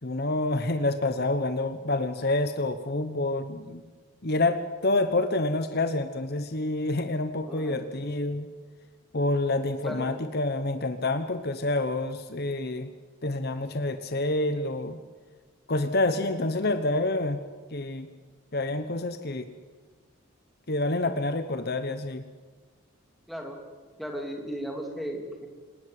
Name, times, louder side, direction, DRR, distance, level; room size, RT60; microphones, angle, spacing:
voice 1, 0.0-3.8 4.2-8.5 9.1-12.9 13.2-15.0 15.7-17.4 17.7-18.1 18.5-19.5 20.7-22.2, left 2 dB, 45° left, 10 dB, 1.0 m, -28 dB
voice 2, 7.4-8.1 9.8-10.2 23.3-23.6 24.0-25.5, equal, ahead, 1 dB, 3.0 m, -36 dB
27.0 x 19.0 x 7.8 m, 1.4 s
head